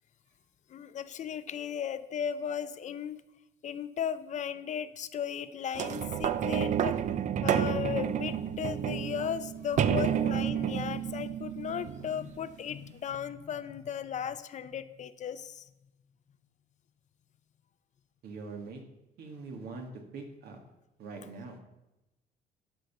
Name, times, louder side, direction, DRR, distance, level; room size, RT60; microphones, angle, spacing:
voice 1, 0.7-3.2 3.6-7.0 7.4-15.6, left 8 dB, 45° left, 13 dB, 0.6 m, -36 dB
sound 1, 5.7-12.5 13.1-13.2, right 9 dB, 45° right, 0.5 m, -30 dB
voice 2, 18.2-18.8 19.2-19.9 20.1-20.6 21.0-21.6, right 4 dB, 70° right, 3 dB, 2.0 m, -43 dB
12.5 x 5.2 x 5.9 m, 0.94 s
cardioid pair, 110°, 17 cm